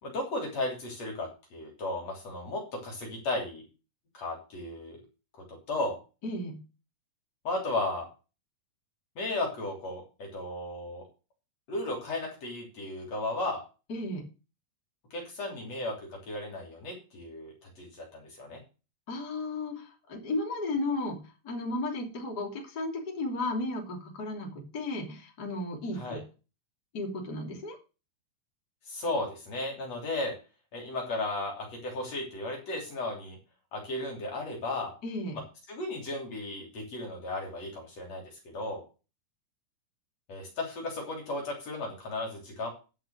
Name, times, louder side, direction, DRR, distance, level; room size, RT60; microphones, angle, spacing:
voice 1, 0.0-3.6 4.1-5.0 5.3-6.0 7.4-8.1 9.2-11.0 11.7-13.6 15.1-18.6 25.9-26.2 28.9-30.3 30.7-33.4 33.7-34.9 35.3-35.4 35.7-38.8 40.3-42.7, left 2 dB, 50° left, 0 dB, 4.1 m, -35 dB
voice 2, 6.2-6.6 13.9-14.2 19.1-21.2 21.4-26.2 26.9-27.8 35.0-35.4, left 2 dB, 30° left, 0 dB, 3.3 m, -34 dB
10.5 x 6.0 x 6.4 m, 0.31 s
omnidirectional pair, 3.9 m